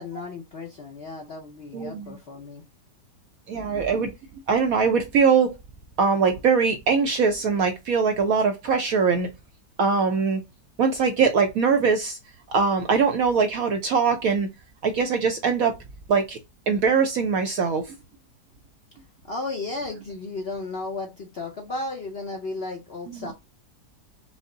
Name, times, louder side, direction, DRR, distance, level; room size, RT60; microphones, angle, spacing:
voice 1, 0.0-2.6 19.2-23.3, left 3 dB, 55° left, 0.7 m, -34 dB
voice 2, 1.7-2.1 3.5-4.1 4.5-5.6 6.0-9.3 9.8-10.4 10.8-12.2 12.5-14.5 14.8-15.7 16.1-16.4 16.7-17.9, right 5 dB, 70° right, 0.9 m, -22 dB
5.1 x 2.0 x 3.7 m
omnidirectional pair, 1.9 m